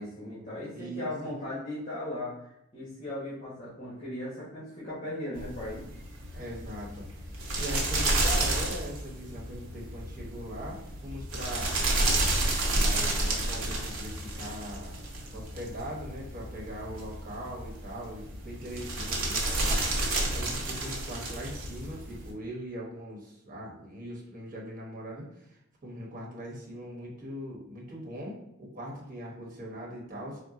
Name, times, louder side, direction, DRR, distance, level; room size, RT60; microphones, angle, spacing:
voice 1, 0.0-2.5 2.7-5.8, left 1 dB, 35° left, -8 dB, 1.3 m, -37 dB
voice 2, 0.7-1.3 6.3-7.1 7.3-11.9 12.7-14.9 15.3-30.4, equal, 40° right, -3 dB, 1.1 m, -41 dB
sound 1, 5.4-22.3, right 2 dB, 85° right, 0.9 m, -31 dB
4.2 x 2.1 x 3.7 m, 0.81 s
head